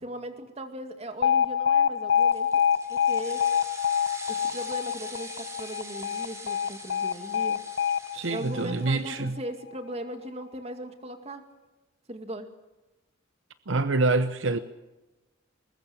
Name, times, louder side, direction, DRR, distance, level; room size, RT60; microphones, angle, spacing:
voice 1, 0.0-2.6 2.9-3.4 4.3-7.6 8.3-11.4 12.1-12.5, right 1 dB, 30° right, 2.3 m, -38 dB
Alarm, 1.2-9.3, left 8 dB, 80° left, 0.9 m, -26 dB
sound 1, 2.1-9.1, right 2 dB, 15° right, 3.5 m, -44 dB
voice 2, 8.1-9.4 13.7-14.6, right 3 dB, 70° right, 0.8 m, -26 dB
21.5 x 20.5 x 7.3 m
head